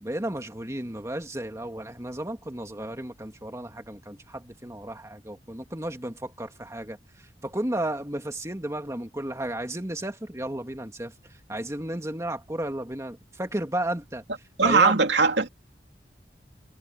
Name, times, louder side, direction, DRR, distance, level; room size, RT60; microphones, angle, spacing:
voice 1, 0.0-11.1 11.5-14.2 14.6-15.0, right 1 dB, 15° right, 2.3 m, -33 dB
voice 2, 14.6-15.5, right 4 dB, 80° right, 2.6 m, -20 dB
head